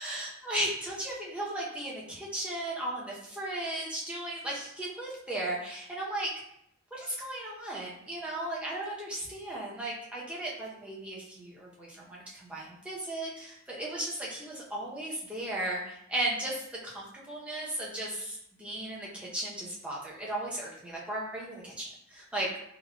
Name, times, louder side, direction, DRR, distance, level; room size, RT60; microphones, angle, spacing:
voice 1, 0.0-6.3 6.9-22.6, right 1 dB, 5° right, -5 dB, 0.6 m, -36 dB
3.9 x 2.2 x 2.3 m, 0.74 s
head